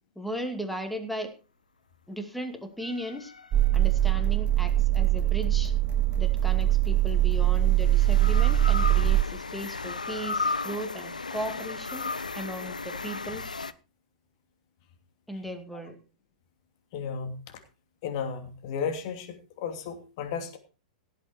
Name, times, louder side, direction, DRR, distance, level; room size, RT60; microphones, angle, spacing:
voice 1, 0.2-1.3 2.1-3.3 3.7-5.7 6.2-13.4 15.3-16.0, equal, ahead, 5 dB, 2.4 m, -37 dB
sound 1, 2.8-4.3 6.2-13.7, left 3 dB, 90° left, 0.6 m, -35 dB
sound 2, 3.5-9.2, right 13 dB, 30° right, 0.7 m, -22 dB
voice 2, 16.9-17.4 18.0-20.6, left 6 dB, 50° left, 6 dB, 2.8 m, -34 dB
17.0 x 8.4 x 4.4 m, 0.32 s
figure-of-eight pair, 100°, 4 cm